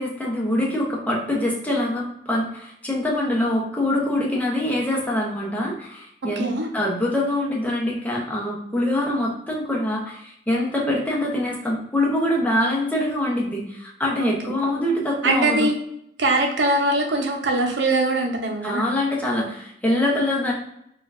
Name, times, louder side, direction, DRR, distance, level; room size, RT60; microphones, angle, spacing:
voice 1, 0.0-15.7 18.6-20.5, left 1 dB, 10° left, -3 dB, 0.8 m, -24 dB
voice 2, 14.2-14.5 15.2-15.8 16.2-18.8, right 2 dB, 90° right, 2 dB, 0.6 m, -22 dB
4.3 x 2.4 x 2.5 m, 0.75 s
head